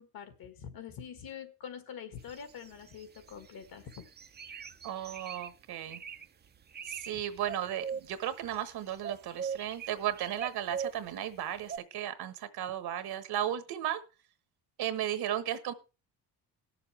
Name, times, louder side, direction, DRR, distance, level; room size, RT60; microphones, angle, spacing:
voice 1, 0.0-4.0 7.1-7.2, left 7 dB, 60° left, 1.8 m, -45 dB
sound 1, 2.3-3.5 3.9-5.5 5.9-6.3 6.6-7.1 7.4-8.7 9.0-11.1 11.7-11.8, right 7 dB, 25° right, 0.5 m, -40 dB
voice 2, 4.8-6.0 6.9-14.0 14.8-15.7, right 11 dB, 65° right, 1.3 m, -35 dB
19.5 x 6.8 x 3.2 m
cardioid pair, 115°, 40 cm